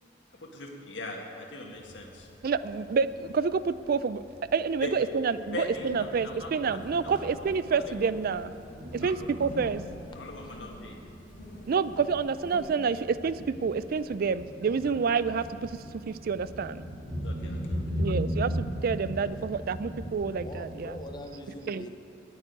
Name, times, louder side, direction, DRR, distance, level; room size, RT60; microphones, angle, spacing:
voice 1, 0.4-2.3 4.8-4.9 5.5-6.6 7.0-7.2 7.8-7.9 9.0-9.2 10.1-11.0 14.8-14.9 17.2-17.8, left 2 dB, 70° left, 1 dB, 1.8 m, -40 dB
Thunder, 1.7-21.1, equal, 35° right, 2.8 m, -39 dB
voice 2, 2.4-4.2 4.5-8.5 8.9-9.8 11.7-15.8 16.1-16.8 18.0-20.9 21.7-21.8, right 5 dB, 50° right, 15 dB, 0.4 m, -28 dB
sound 1, 6.8-12.8, left 1 dB, 45° left, 2.0 m, -50 dB
voice 3, 20.4-21.9, equal, 25° left, 5 dB, 0.7 m, -43 dB
9.8 x 9.2 x 9.3 m, 2.5 s
head